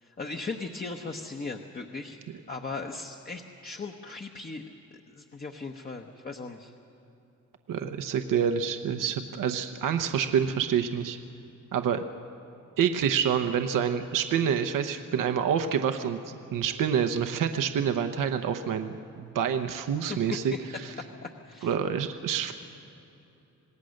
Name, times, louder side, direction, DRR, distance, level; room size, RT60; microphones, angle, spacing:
voice 1, 0.0-2.2 2.5-4.6 4.9-6.7 20.1-20.2 21.2-21.8, left 3 dB, 30° left, 3 dB, 1.0 m, -38 dB
voice 2, 7.7-11.2 11.7-12.0 12.8-16.2 16.5-20.5 21.6-22.5, right 8 dB, 80° right, 7 dB, 1.0 m, -27 dB
27.0 x 18.5 x 6.5 m, 2.8 s
cardioid pair, 115°, 32 cm